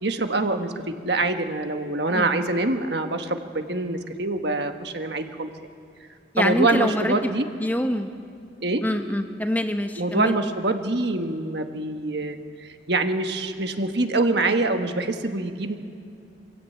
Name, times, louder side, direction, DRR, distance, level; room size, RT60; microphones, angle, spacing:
voice 1, 0.0-5.5 6.4-7.4 8.6-8.8 10.0-15.8, right 2 dB, 60° right, 6 dB, 1.5 m, -25 dB
voice 2, 6.3-7.3 7.6-8.1 8.8-10.3, left 1 dB, 10° left, 6 dB, 0.9 m, -25 dB
24.0 x 16.0 x 8.5 m, 2.5 s
head